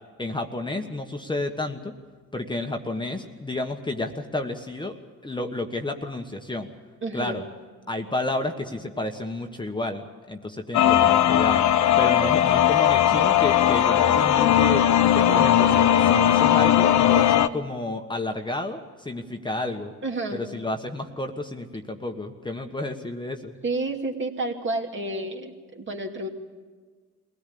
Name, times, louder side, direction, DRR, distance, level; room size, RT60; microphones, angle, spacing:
voice 1, 0.2-1.9 2.3-5.0 5.2-6.7 7.1-7.4 7.9-11.7 12.0-19.9 20.3-23.5, left 2 dB, 15° left, 4 dB, 1.3 m, -31 dB
voice 2, 7.0-7.4 10.8-11.2 20.0-20.4 23.6-26.3, right 2 dB, 40° right, 2 dB, 2.5 m, -30 dB
sound 1, 10.7-17.5, left 11 dB, 70° left, 0.8 m, -18 dB
22.0 x 17.0 x 8.6 m, 1.5 s
cardioid pair, 90°, 30 cm